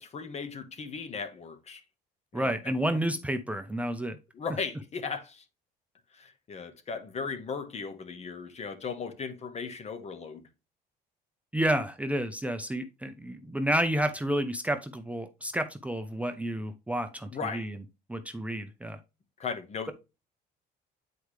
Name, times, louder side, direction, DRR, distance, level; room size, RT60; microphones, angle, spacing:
voice 1, 0.0-1.8 2.3-2.7 4.3-5.4 6.1-10.5 17.3-17.7 19.4-19.9, left 5 dB, 40° left, 1.4 m, -37 dB
voice 2, 2.3-4.2 11.5-17.8 18.1-19.0, right 1 dB, 10° right, 0.6 m, -30 dB
8.4 x 4.7 x 3.2 m
cardioid pair, 110°, 17 cm